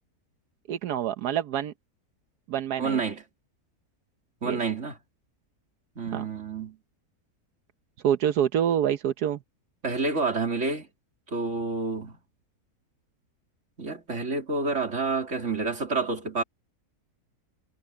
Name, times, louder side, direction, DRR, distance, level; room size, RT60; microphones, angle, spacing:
voice 1, 0.7-1.7 2.5-3.0 4.4-4.6 6.1-6.3 8.0-9.4, right 9 dB, 85° right, 1.4 m, -26 dB
voice 2, 2.8-3.2 4.4-5.0 6.0-6.8 9.8-10.9 11.3-12.2 13.8-16.4, right 4 dB, 50° right, 3.5 m, -29 dB
omnidirectional pair, 1.6 m